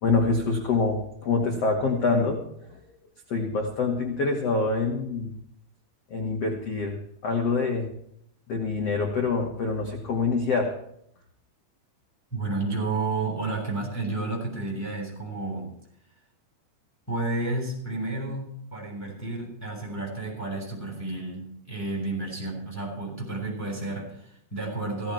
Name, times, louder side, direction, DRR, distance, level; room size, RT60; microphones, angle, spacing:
voice 1, 0.0-2.4 2.7-2.8 3.3-5.3 6.1-7.0 7.2-7.9 8.5-10.7, left 4 dB, 45° left, 1 dB, 2.1 m, -25 dB
voice 2, 12.3-15.7 17.1-25.1, right 2 dB, 5° left, -1 dB, 6.2 m, -31 dB
16.5 x 15.0 x 4.5 m, 0.70 s
omnidirectional pair, 5.8 m